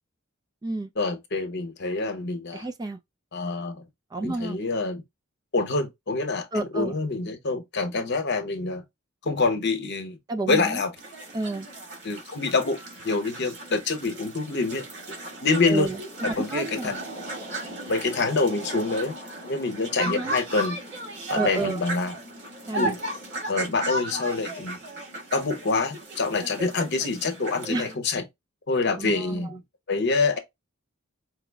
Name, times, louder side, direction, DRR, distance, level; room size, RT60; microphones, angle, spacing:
voice 1, 1.0-2.7 3.3-3.8 4.2-5.0 5.5-8.8 9.2-10.2 10.4-10.9 12.0-12.8 13.0-14.9 15.4-15.9 16.2-17.0 17.9-19.1 19.4-20.8 21.3-22.2 22.7-23.0 23.5-24.8 25.3-28.3 28.7-29.6 29.9-30.4, left 3 dB, 55° left, 0.9 m, -26 dB
voice 2, 2.5-3.0 4.1-4.6 6.5-6.9 10.3-10.8 11.3-11.7 15.7-16.9 20.0-20.4 21.3-21.8 22.7-22.9 27.7-27.9 29.0-29.5, right 2 dB, 20° right, 0.3 m, -30 dB
sound 1, 11.0-27.9, right 1 dB, 55° right, 2.0 m, -35 dB
4.7 x 2.1 x 3.4 m
head